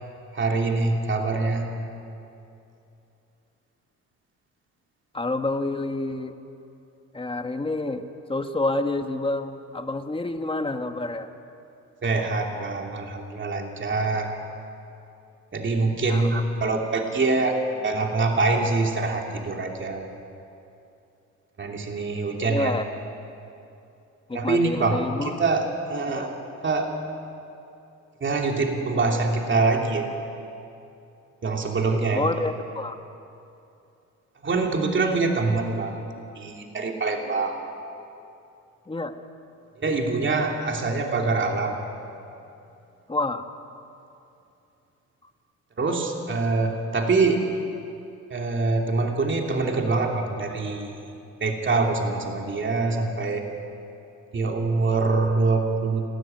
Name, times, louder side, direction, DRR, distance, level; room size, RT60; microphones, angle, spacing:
voice 1, 0.3-1.7 12.0-14.3 15.5-20.1 21.6-22.7 24.3-26.3 26.6-26.9 28.2-30.1 31.4-32.2 34.4-35.9 36.4-37.5 39.8-41.8 45.8-47.5 48.3-50.9 51.4-53.5 54.3-56.0, right 3 dB, 40° right, 2 dB, 3.0 m, -24 dB
voice 2, 5.1-6.3 7.1-11.3 16.1-16.4 22.5-22.8 24.3-25.3 26.1-26.3 32.1-33.0 38.9-39.1 43.1-43.4 45.2-45.3, left 2 dB, 15° left, 7 dB, 1.6 m, -28 dB
30.0 x 13.5 x 9.2 m, 2.7 s
cardioid pair, 90°, 30 cm